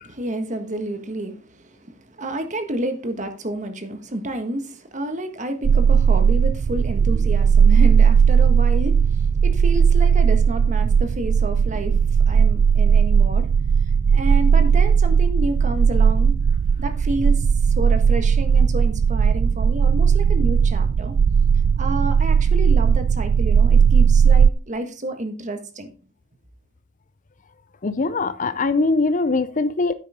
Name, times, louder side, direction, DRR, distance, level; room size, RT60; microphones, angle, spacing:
voice 1, 0.0-13.5 14.1-16.3 16.8-17.4 17.8-21.1 21.8-25.9, right 1 dB, 40° right, 1.5 m, -30 dB
sound 1, 5.6-24.5, right 6 dB, 85° right, 0.4 m, -17 dB
voice 2, 27.8-29.9, left 3 dB, 40° left, 0.6 m, -21 dB
9.5 x 8.1 x 3.6 m
head